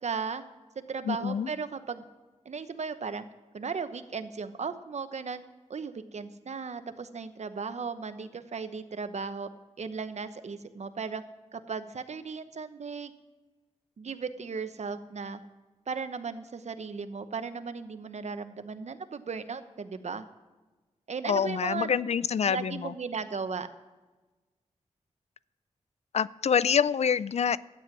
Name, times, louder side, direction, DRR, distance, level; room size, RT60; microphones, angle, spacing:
voice 1, 0.0-0.4 0.9-2.1 2.4-3.2 3.5-5.4 5.7-9.5 9.8-11.2 11.5-13.1 14.0-15.4 15.9-20.2 21.1-21.9 22.5-23.7, right 5 dB, 65° right, 10 dB, 0.9 m, -36 dB
voice 2, 1.1-1.5 21.2-22.9 26.1-27.6, left 7 dB, 60° left, 19 dB, 0.4 m, -26 dB
12.5 x 9.4 x 6.0 m, 1.2 s
cardioid pair, 60°, 13 cm